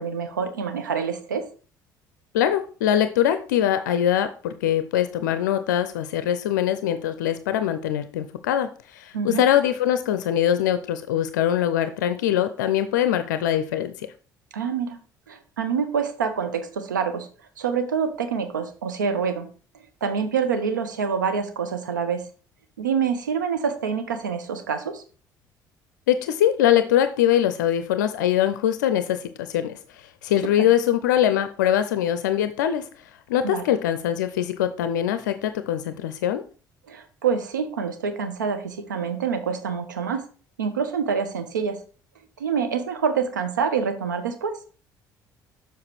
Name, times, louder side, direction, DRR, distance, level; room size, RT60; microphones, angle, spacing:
voice 1, 0.0-1.5 9.1-9.4 14.5-15.0 15.3-17.3 17.6-19.5 20.0-22.3 22.8-25.0 30.6-30.7 33.4-33.7 36.9-40.2 40.6-41.8 42.4-44.6, right 6 dB, 80° right, 8 dB, 0.8 m, -26 dB
voice 2, 2.3-14.1 26.1-29.8 30.2-32.9 33.3-36.4, left 10 dB, 70° left, 11 dB, 0.5 m, -22 dB
7.2 x 4.6 x 4.6 m, 0.39 s
figure-of-eight pair, 55°, 10 cm